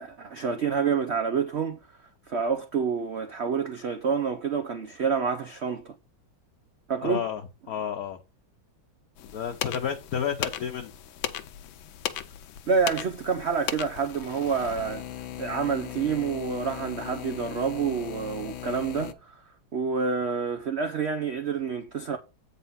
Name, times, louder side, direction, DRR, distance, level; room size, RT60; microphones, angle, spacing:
voice 1, 0.0-5.9 6.9-7.2 12.7-15.1 15.4-19.4 19.7-22.2, right 6 dB, 85° right, 0.6 m, -28 dB
voice 2, 7.0-7.4 7.7-8.2 9.2-10.9, left 8 dB, 60° left, 1.0 m, -31 dB
sound 1, 9.2-19.1, left 11 dB, 80° left, 1.5 m, -37 dB
8.4 x 4.2 x 5.6 m
omnidirectional pair, 2.2 m